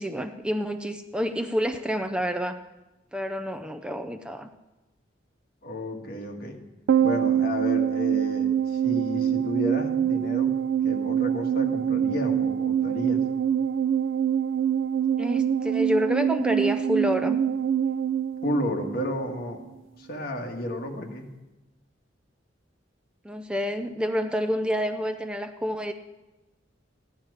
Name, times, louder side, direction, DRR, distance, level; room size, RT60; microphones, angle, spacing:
voice 1, 0.0-2.6 3.1-4.5 15.2-17.4 23.2-25.9, equal, 5° right, 6 dB, 0.4 m, -28 dB
voice 2, 5.6-6.6 7.0-10.5 10.8-13.2 18.4-19.6 20.0-21.3, left 1 dB, 55° left, 2 dB, 1.7 m, -32 dB
sound 1, 6.9-19.4 19.7-19.8, right 9 dB, 80° right, 0.4 m, -25 dB
15.0 x 10.5 x 4.9 m, 1.1 s
head